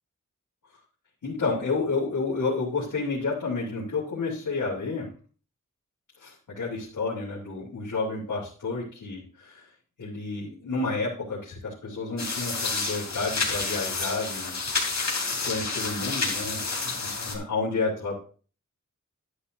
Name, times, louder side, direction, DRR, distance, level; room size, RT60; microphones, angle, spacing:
voice 1, 1.2-5.1 6.2-9.7 10.0-14.9 15.4-18.1, left 3 dB, 90° left, -6 dB, 3.3 m, -30 dB
sound 1, 12.2-17.4, left 3 dB, 60° left, 3.1 m, -29 dB
12.0 x 10.0 x 2.7 m, 0.39 s
wide cardioid pair, 120°, 31 cm